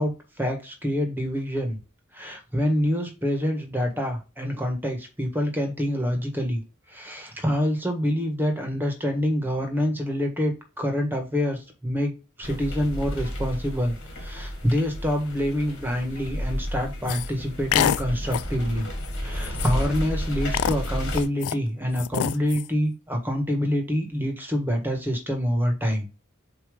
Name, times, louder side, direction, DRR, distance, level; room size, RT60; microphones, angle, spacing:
voice 1, 0.0-1.8 2.1-6.6 6.9-12.1 12.4-18.9 19.2-26.1, equal, 10° right, 4 dB, 1.6 m, -26 dB
sound 1, 12.4-21.2, equal, 55° left, 2.6 m, -32 dB
sound 2, 17.1-17.3 17.7-18.0 18.3-18.5 19.1-19.2 19.4-19.9 20.5-21.6 22.0-22.7, left 9 dB, 85° left, 0.4 m, -26 dB
7.3 x 2.9 x 5.1 m, 0.30 s
head